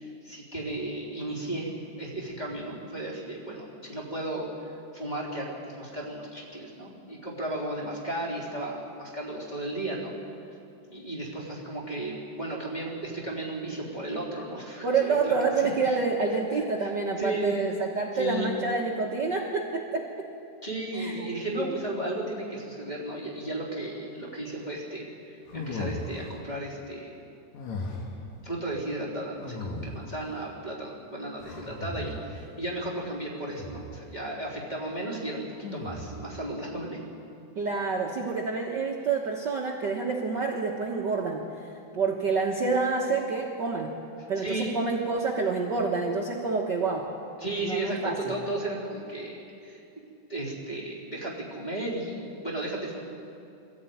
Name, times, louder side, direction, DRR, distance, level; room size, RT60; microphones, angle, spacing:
voice 1, 0.0-10.1 10.9-15.3 15.6-16.0 16.5-17.6 18.1-18.5 20.6-27.2 28.4-37.0 44.4-44.7 47.4-50.0 50.3-53.0, right 1 dB, 15° left, -3 dB, 3.4 m, -34 dB
voice 2, 14.8-20.3 20.9-21.8 37.5-43.9 44.3-47.1 47.6-48.3, right 4 dB, 50° right, -1 dB, 1.4 m, -28 dB
sound 1, 25.5-26.4 27.5-28.2 29.4-30.2 31.4-32.4 33.5-34.0 35.6-36.3, left 2 dB, 70° left, 3.0 m, -37 dB
21.5 x 14.0 x 9.4 m, 2.6 s
omnidirectional pair, 3.4 m